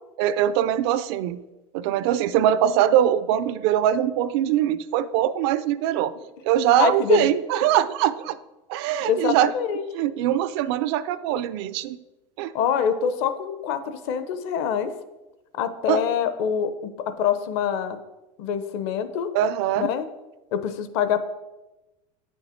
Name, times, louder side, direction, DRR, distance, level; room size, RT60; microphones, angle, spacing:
voice 1, 0.2-1.4 1.7-6.1 6.4-8.4 8.7-9.5 9.9-12.0 12.4-12.5 15.9-16.0 19.3-19.9, right 11 dB, 50° right, 15 dB, 0.4 m, -22 dB
voice 2, 6.8-7.3 9.1-9.8 12.5-14.9 15.6-16.7 17.1-18.0 18.4-19.3 19.8-20.0 20.5-21.2, left 7 dB, 55° left, 11 dB, 0.7 m, -25 dB
8.4 x 6.5 x 4.3 m, 1.1 s
supercardioid pair, 160°, 18 cm